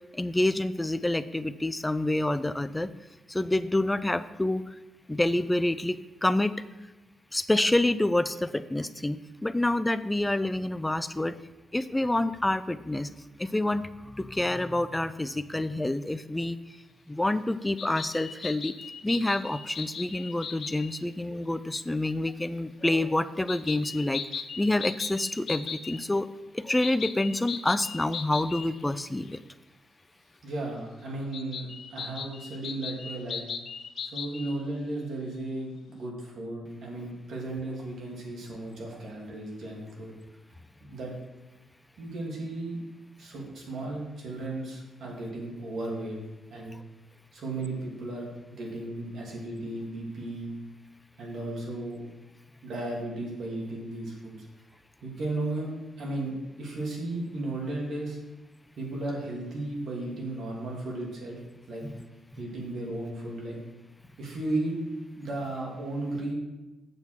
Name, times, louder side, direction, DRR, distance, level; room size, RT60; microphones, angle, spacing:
voice 1, 0.1-2.9 3.3-4.7 5.1-6.5 7.3-11.4 11.7-13.1 13.4-16.6 17.1-18.7 19.0-24.2 24.6-26.3 26.5-29.4, left 1 dB, 10° left, 13 dB, 0.4 m, -27 dB
sound 1, 17.8-21.0 23.5-26.0 26.8-29.0 29.2-29.3 31.3-34.5, left 6 dB, 60° left, 0.6 m, -38 dB
voice 2, 30.4-33.4 34.1-40.1 40.8-41.1 42.0-42.8 43.2-46.2 46.5-46.8 47.3-50.5 51.2-52.1 52.6-54.5 55.0-55.7 56.0-56.3 56.6-58.2 58.8-61.4 61.7-61.9 62.4-63.6 64.2-64.8 65.1-66.3, right 2 dB, 65° right, -1 dB, 2.6 m, -35 dB
8.0 x 7.1 x 4.5 m, 1.1 s
cardioid pair, 110°, 0 cm